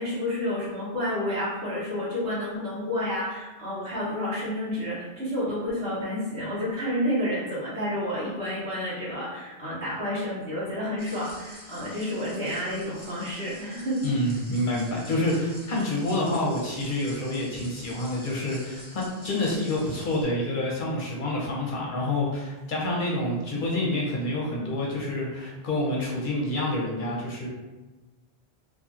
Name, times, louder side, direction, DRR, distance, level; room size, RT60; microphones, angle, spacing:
voice 1, 0.0-14.1, left 1 dB, 70° right, -9 dB, 1.1 m, -30 dB
sound 1, 11.0-20.2, equal, 10° left, 1.0 m, -47 dB
voice 2, 14.0-27.5, left 1 dB, 55° left, -3 dB, 0.8 m, -28 dB
2.7 x 2.6 x 2.4 m, 1.1 s
omnidirectional pair, 1.1 m